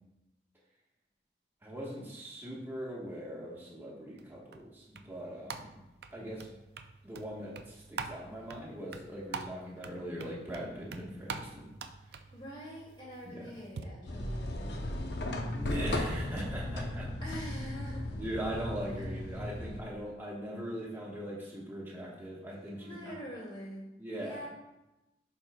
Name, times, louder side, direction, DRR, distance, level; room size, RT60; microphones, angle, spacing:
voice 1, 1.6-5.8 6.1-6.6 7.0-11.7 13.2-13.4 15.5-17.1 18.2-23.1 24.0-24.4, right 1 dB, 10° right, -5 dB, 1.2 m, -40 dB
sound 1, 4.2-13.8, right 4 dB, 60° right, 0.4 m, -46 dB
voice 2, 12.1-15.7 17.2-18.2 18.9-19.3 22.8-23.9 24.1-24.5, equal, 30° left, -5 dB, 2.2 m, -46 dB
sound 2, 14.1-19.8, left 1 dB, 70° left, 0.7 m, -36 dB
11.0 x 4.6 x 2.2 m, 0.98 s
head